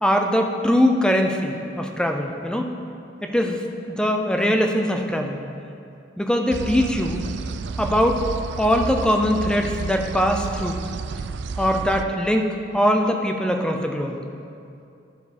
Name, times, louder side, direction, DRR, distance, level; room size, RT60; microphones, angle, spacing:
voice 1, 0.0-2.7 3.2-3.6 3.9-5.4 6.2-7.2 7.8-8.2 8.6-10.8 11.6-14.2, equal, 5° left, 3 dB, 0.5 m, -21 dB
sound 1, 6.5-12.0, right 4 dB, 65° right, 0.3 m, -31 dB
12.0 x 4.7 x 4.2 m, 2.6 s
head